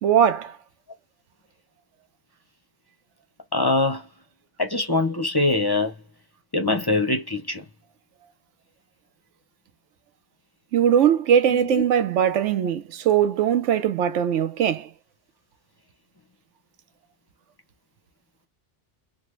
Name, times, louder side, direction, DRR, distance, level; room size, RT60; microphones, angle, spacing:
voice 1, 0.0-0.6 10.7-14.9, right 9 dB, 90° right, 1.0 m, -20 dB
voice 2, 3.5-4.1 4.6-5.9 6.5-7.6 11.5-11.8, left 2 dB, 30° left, 0.5 m, -23 dB
3.3 x 2.1 x 3.0 m
omnidirectional pair, 1.2 m